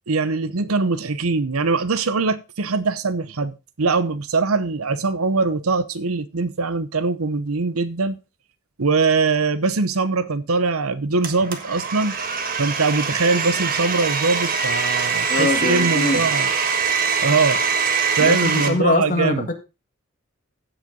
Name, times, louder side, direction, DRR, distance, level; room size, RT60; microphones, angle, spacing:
voice 1, 0.1-8.2 8.8-12.2 12.6-16.5 17.2-17.6 18.2-19.5, right 4 dB, 90° right, 0.9 m, -22 dB
Domestic sounds home sounds, 11.2-18.7, right 5 dB, 40° right, 1.5 m, -23 dB
voice 2, 15.3-16.3 18.2-19.5, left 2 dB, 40° left, 1.8 m, -22 dB
15.5 x 5.8 x 3.9 m
head